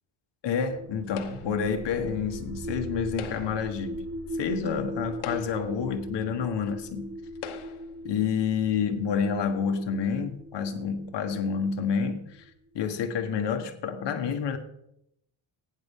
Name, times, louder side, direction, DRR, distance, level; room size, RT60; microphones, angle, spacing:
voice 1, 0.4-4.0 4.4-7.1 8.0-12.5 12.7-14.6, left 6 dB, 60° left, 1.5 m, -29 dB
sound 1, 0.7-12.5, right 1 dB, 30° right, 1.2 m, -39 dB
sound 2, 1.2-1.7 3.0-3.7 4.6-4.7 5.1-5.8 6.7-6.8 7.4-7.9, left 7 dB, 85° left, 1.3 m, -41 dB
15.5 x 9.7 x 3.7 m
cardioid pair, 135°, 48 cm